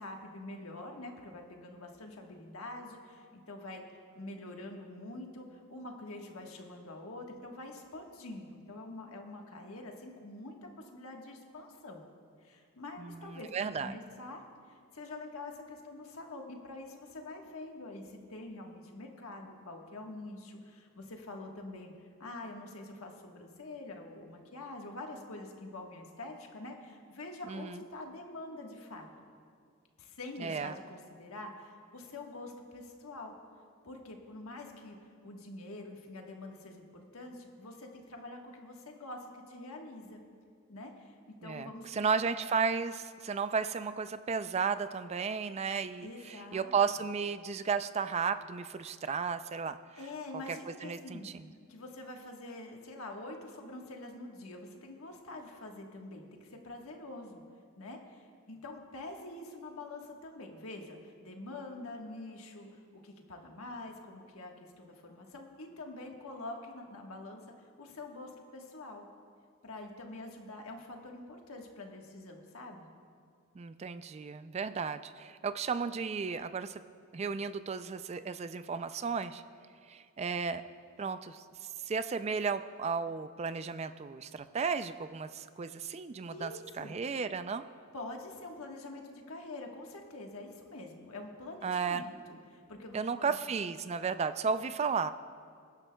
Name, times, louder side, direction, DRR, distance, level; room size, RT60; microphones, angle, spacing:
voice 1, 0.0-12.1 12.4-14.4 14.7-21.9 22.2-29.1 30.0-33.3 33.8-35.0 35.2-40.2 40.7-42.1 46.0-46.7 50.0-51.3 51.7-57.4 57.8-69.1 69.6-72.9 86.3-87.0 87.9-93.3, left 2 dB, 80° left, 2 dB, 1.4 m, -46 dB
voice 2, 13.0-14.0 27.5-27.8 30.4-30.8 41.4-49.8 50.5-50.6 50.8-51.5 73.6-76.8 77.1-79.4 79.9-80.6 81.0-86.5 86.8-87.6 91.6-92.0 92.9-95.1, right 5 dB, 30° right, 12 dB, 0.3 m, -34 dB
22.5 x 10.5 x 2.3 m, 2.2 s
head